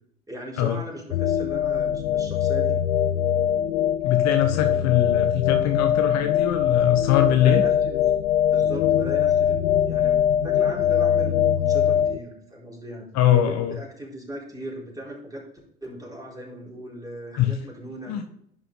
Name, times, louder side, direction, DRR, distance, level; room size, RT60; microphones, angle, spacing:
voice 1, 0.3-2.8 7.4-8.1 8.4-15.4 15.8-18.3, equal, 10° right, -3 dB, 4.3 m, -37 dB
sound 1, 1.1-12.2, left 9 dB, 80° left, 0.6 m, -22 dB
voice 2, 4.0-7.6 13.1-13.8 17.4-17.5 18.1-18.2, left 11 dB, 50° left, 6 dB, 1.2 m, -22 dB
11.0 x 5.6 x 3.8 m, 0.67 s
hypercardioid pair, 70°, 36 cm